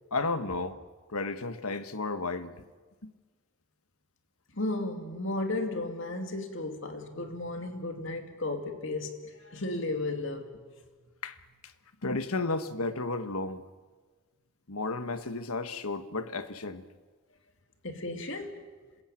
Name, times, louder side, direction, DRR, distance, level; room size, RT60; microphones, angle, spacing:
voice 1, 0.1-0.8 1.1-2.5 3.0-3.1 11.2-11.4 12.0-13.6 14.7-16.8, left 3 dB, 80° left, 1.4 m, -33 dB
voice 2, 4.5-10.6 17.8-18.6, left 2 dB, 55° left, 2.7 m, -34 dB
26.5 x 21.0 x 9.0 m
head